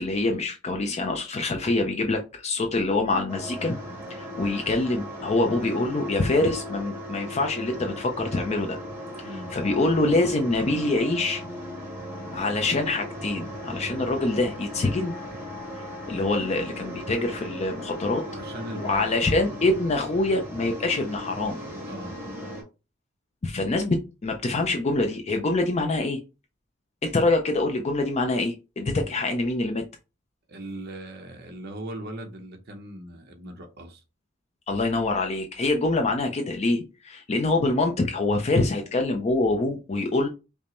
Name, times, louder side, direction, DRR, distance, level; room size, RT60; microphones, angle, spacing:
voice 1, 0.0-3.8 4.1-8.8 9.5-11.4 12.3-15.1 16.1-18.3 18.8-21.6 23.4-26.2 27.0-29.8 34.7-40.3, left 2 dB, 30° left, 0.5 m, -25 dB
sound 1, 3.3-22.6, equal, 10° right, 1.4 m, -37 dB
voice 2, 9.2-9.5 18.3-19.1 21.8-22.2 30.5-34.0, right 1 dB, 50° right, 0.8 m, -39 dB
5.2 x 2.0 x 2.9 m
head